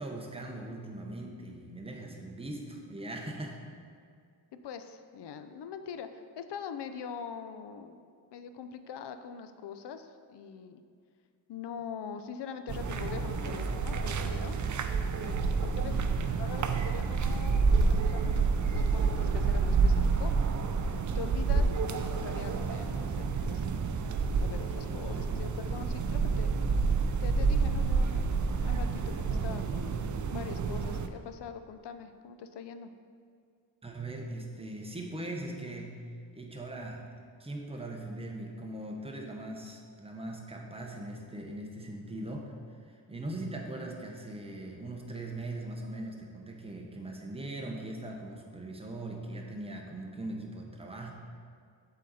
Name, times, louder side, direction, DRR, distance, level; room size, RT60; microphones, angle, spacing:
voice 1, 0.0-3.6 16.2-16.3 33.8-36.0 36.3-37.1 37.4-42.5 42.9-51.1, right 1 dB, 15° right, 0 dB, 1.0 m, -40 dB
voice 2, 4.6-8.1 8.3-10.8 11.5-14.6 15.2-15.3 15.6-16.0 16.4-20.3 21.1-26.5 27.2-32.9, left 7 dB, 65° left, 9 dB, 0.6 m, -43 dB
sound 1, 12.7-31.1, right 4 dB, 45° right, 0.5 m, -29 dB
7.3 x 4.1 x 4.2 m, 2.2 s
cardioid pair, 65°, 44 cm